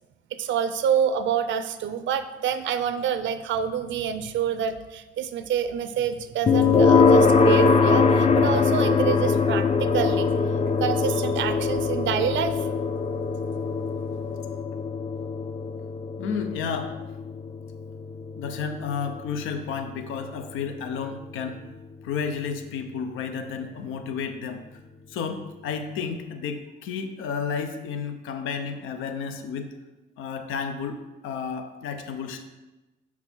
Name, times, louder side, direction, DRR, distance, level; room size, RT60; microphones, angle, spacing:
voice 1, 0.4-10.5 10.8-12.9, right 8 dB, 70° right, 12 dB, 0.5 m, -27 dB
sound 1, 6.5-21.4, left 4 dB, 35° left, 0.5 m, -22 dB
voice 2, 16.2-17.1 18.4-21.6 22.0-24.6 25.1-29.7 30.2-31.0 31.2-32.4, left 6 dB, 90° left, 7 dB, 0.7 m, -32 dB
6.0 x 5.8 x 4.5 m, 1.1 s
cardioid pair, 90°, 20 cm